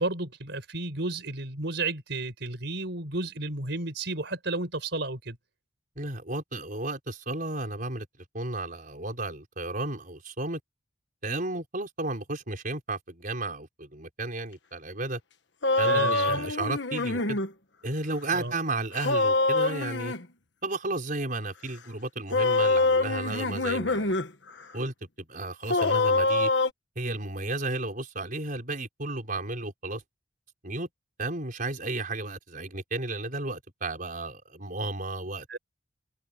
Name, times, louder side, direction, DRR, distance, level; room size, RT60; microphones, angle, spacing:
voice 1, 0.0-5.4 15.9-16.5 18.3-18.5 35.5-35.6, right 2 dB, 65° right, 5.3 m, -32 dB
voice 2, 6.0-8.1 8.3-10.6 11.2-15.2 15.8-17.4 17.8-20.1 20.6-24.1 24.7-26.5 27.0-30.0 30.6-30.9 31.2-35.6, right 2 dB, 45° right, 5.6 m, -33 dB
sound 1, 15.6-17.5 18.9-20.2 22.3-24.3 24.6-24.7 25.7-26.7, left 2 dB, 65° left, 1.4 m, -25 dB
head